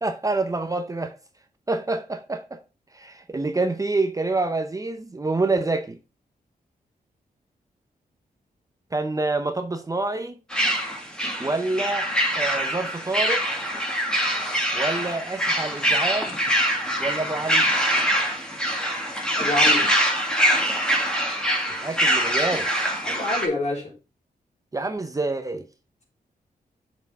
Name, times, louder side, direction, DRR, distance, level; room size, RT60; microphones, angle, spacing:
voice 1, 0.0-1.1 1.7-2.6 2.9-6.0 8.9-10.4 11.4-13.5 14.7-16.4 17.0-17.7 21.8-22.7 24.7-25.7, right 2 dB, 20° right, 0.7 m, -27 dB
sound 1, 10.5-23.5, equal, 5° left, 2.2 m, -24 dB
voice 2, 19.4-19.9 23.0-23.9, left 2 dB, 50° left, 4.0 m, -27 dB
6.5 x 6.2 x 3.6 m
wide cardioid pair, 110°, 15 cm